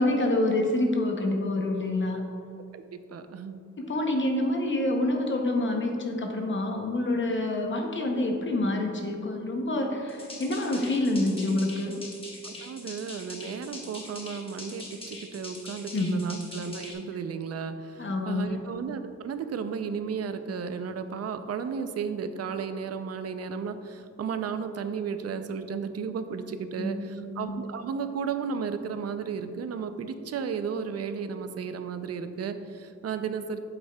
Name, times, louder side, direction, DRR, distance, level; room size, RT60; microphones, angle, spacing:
voice 1, 0.0-2.2 3.8-11.9 15.9-16.2 18.0-18.6 26.8-27.5, left 2 dB, 40° left, 2 dB, 0.7 m, -27 dB
voice 2, 2.7-3.6 12.4-33.6, right 6 dB, 55° right, 9 dB, 0.5 m, -34 dB
sound 1, 10.1-16.9, left 2 dB, 20° left, 1.1 m, -43 dB
8.3 x 8.0 x 2.2 m, 2.6 s
wide cardioid pair, 175°, 29 cm